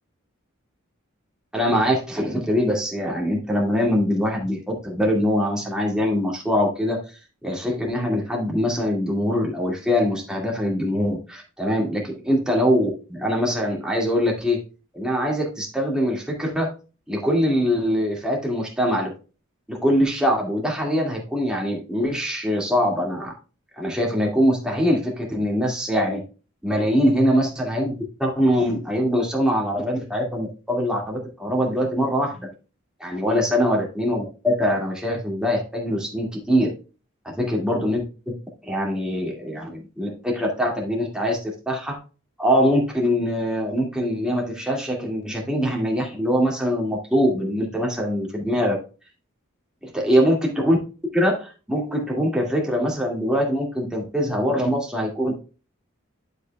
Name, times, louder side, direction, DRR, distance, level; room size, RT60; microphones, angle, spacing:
voice 1, 1.5-7.0 7.4-14.6 14.9-16.7 17.1-19.1 19.7-23.3 23.8-26.2 26.6-27.9 28.2-32.5 33.0-36.7 37.4-38.0 38.3-38.4 38.6-42.0 42.4-48.8 49.8-50.8 51.1-55.4, equal, 5° right, -1 dB, 2.1 m, -23 dB
11.5 x 5.4 x 2.3 m, 0.34 s
head